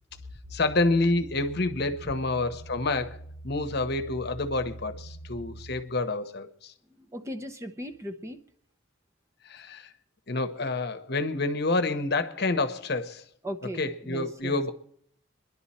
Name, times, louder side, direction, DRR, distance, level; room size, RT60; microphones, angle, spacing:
voice 1, 0.5-3.2 3.4-6.7 9.4-9.9 10.3-13.2 13.8-14.7, left 2 dB, 55° left, 0.9 m, -28 dB
sound 1, 0.6-5.8, right 1 dB, 30° left, 0.8 m, -44 dB
voice 2, 7.0-8.4 13.4-14.5, equal, 15° right, 0.7 m, -37 dB
27.0 x 11.0 x 4.3 m
head